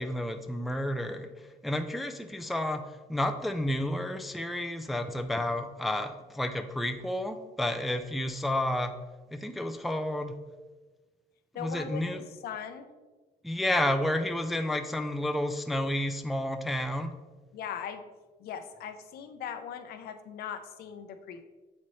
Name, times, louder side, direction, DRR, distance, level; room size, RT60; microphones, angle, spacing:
voice 1, 0.0-1.3 1.6-2.8 3.1-9.0 9.3-10.4 11.6-12.2 13.4-17.2, left 1 dB, ahead, 7 dB, 0.3 m, -31 dB
voice 2, 11.5-12.9 17.5-18.0 18.4-21.4, left 8 dB, 65° left, 8 dB, 0.6 m, -39 dB
7.4 x 4.2 x 3.1 m, 1.3 s
cardioid pair, 110°, 17 cm